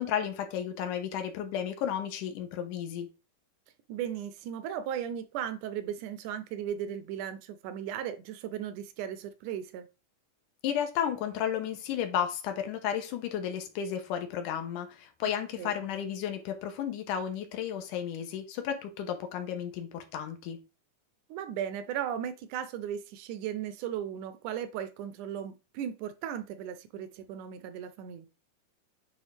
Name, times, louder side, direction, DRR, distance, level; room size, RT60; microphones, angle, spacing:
voice 1, 0.0-3.1 10.6-20.6, left 9 dB, 80° left, 2.4 m, -33 dB
voice 2, 3.9-9.9 15.6-15.8 21.3-28.3, right 9 dB, 80° right, 1.9 m, -36 dB
8.8 x 3.4 x 3.4 m
omnidirectional pair, 3.7 m